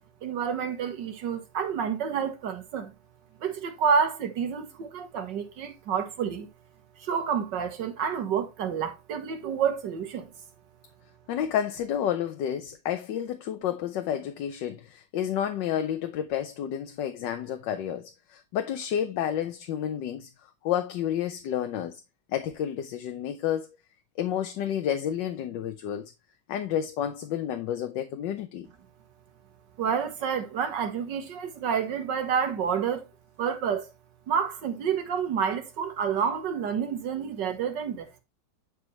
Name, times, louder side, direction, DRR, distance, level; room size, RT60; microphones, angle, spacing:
voice 1, 0.2-2.9 3.4-6.5 7.0-10.3 29.8-33.1 33.4-33.9 34.3-38.2, right 7 dB, 75° right, 1.9 m, -29 dB
voice 2, 11.3-20.3 20.6-22.0 22.3-23.7 24.2-26.1 26.5-28.7, left 10 dB, 80° left, 1.4 m, -30 dB
9.9 x 4.8 x 3.2 m
omnidirectional pair, 1.9 m